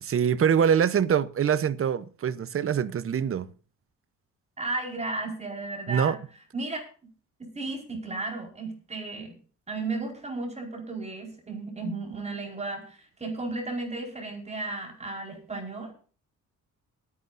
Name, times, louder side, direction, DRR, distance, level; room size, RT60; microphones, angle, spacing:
voice 1, 0.0-3.5 5.9-6.2, right 8 dB, 45° right, 0.9 m, -24 dB
voice 2, 4.6-6.2 6.5-6.8 7.4-9.3 9.7-15.9, right 3 dB, 20° right, 4.7 m, -34 dB
23.5 x 9.7 x 2.6 m
cardioid pair, 130°, 31 cm